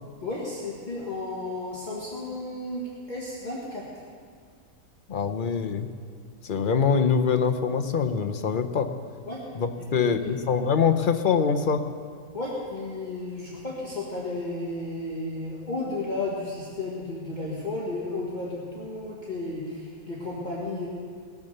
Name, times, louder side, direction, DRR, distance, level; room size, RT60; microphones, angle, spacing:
voice 1, 0.2-3.8 9.3-9.4 9.8-10.4 12.3-20.9, left 2 dB, 30° left, -6 dB, 1.9 m, -33 dB
voice 2, 5.1-5.9 6.4-8.9 9.5-11.8, left 6 dB, 45° left, 6 dB, 0.7 m, -24 dB
19.0 x 7.1 x 6.7 m, 2.1 s
omnidirectional pair, 1.6 m